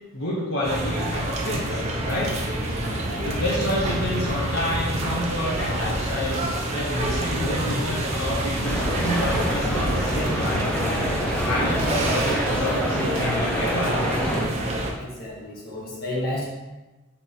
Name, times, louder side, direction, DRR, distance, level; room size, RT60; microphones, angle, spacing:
voice 1, 0.1-2.3 3.2-6.4 6.7-14.4, left 1 dB, 70° left, -6 dB, 1.1 m, -29 dB
sound 1, 0.6-14.9, right 1 dB, 30° right, 0.7 m, -28 dB
sound 2, 1.8-13.9, equal, 80° right, 1.0 m, -35 dB
voice 2, 2.8-3.4 15.0-16.5, left 1 dB, 45° left, -6 dB, 1.7 m, -32 dB
sound 3, 8.6-14.5, equal, 5° left, 0.5 m, -27 dB
4.4 x 3.9 x 5.6 m, 1.1 s
head